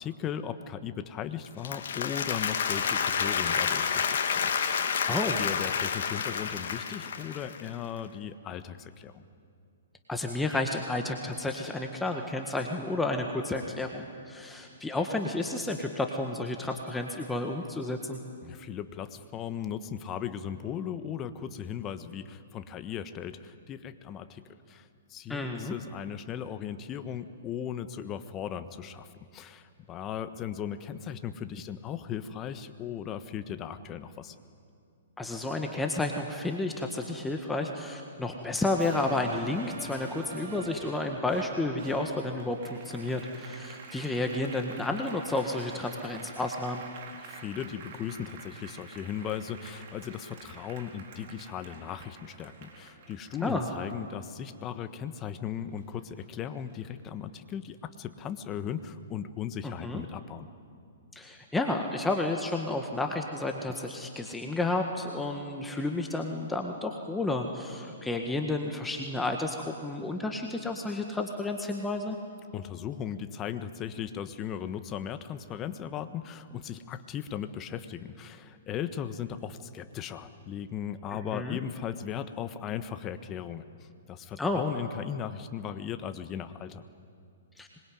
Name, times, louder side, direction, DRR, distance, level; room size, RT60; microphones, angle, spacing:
voice 1, 0.0-9.2 18.4-24.4 24.7-34.3 47.2-60.5 72.5-86.9, left 9 dB, 25° left, 10 dB, 1.4 m, -37 dB
Applause, 1.4-7.7, left 7 dB, 60° left, 2.1 m, -29 dB
voice 2, 5.1-5.4 10.1-18.2 25.3-25.8 35.2-46.8 53.4-53.7 59.6-60.0 61.1-72.2 81.1-81.6 84.4-84.6 87.6-87.7, left 2 dB, 5° left, 3 dB, 1.7 m, -31 dB
Applause 2, 38.6-55.4 55.8-56.9, right 4 dB, 50° right, 4.1 m, -47 dB
25.5 x 21.5 x 9.5 m, 2.5 s
figure-of-eight pair, 120°, 0 cm